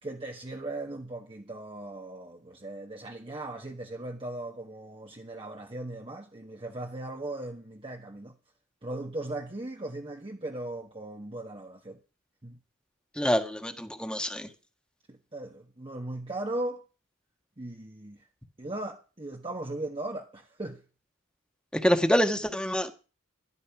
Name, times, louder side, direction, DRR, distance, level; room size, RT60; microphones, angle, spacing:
voice 1, 0.0-8.3 8.8-12.0 12.4-12.6 15.1-16.8 17.6-18.2 18.6-20.8, right 2 dB, 25° right, 1.4 m, -38 dB
voice 2, 13.2-14.5 21.8-22.9, equal, 5° left, 1.5 m, -26 dB
12.5 x 12.0 x 5.9 m
head